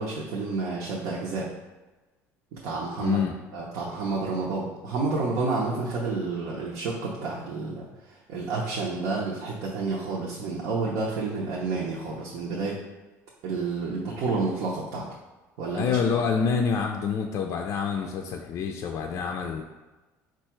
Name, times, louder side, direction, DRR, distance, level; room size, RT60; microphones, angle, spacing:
voice 1, 0.0-1.5 2.5-3.2 3.5-7.9 8.3-12.8 13.4-15.1 15.6-16.0, right 3 dB, 80° right, -5 dB, 0.8 m, -29 dB
voice 2, 3.0-3.4 15.8-19.6, left 6 dB, 50° left, 3 dB, 0.4 m, -27 dB
4.5 x 2.4 x 4.4 m, 1.2 s
cardioid pair, 125°, 6 cm